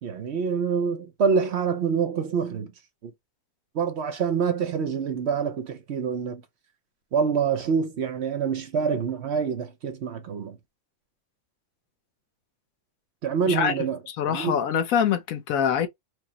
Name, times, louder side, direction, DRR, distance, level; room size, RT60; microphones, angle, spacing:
voice 1, 0.0-2.7 3.0-3.1 3.7-6.4 7.1-10.6 13.2-14.0 14.2-14.6, right 6 dB, 60° right, 0.9 m, -26 dB
voice 2, 13.5-15.9, left 8 dB, 80° left, 1.1 m, -25 dB
4.8 x 2.0 x 2.8 m
omnidirectional pair, 1.4 m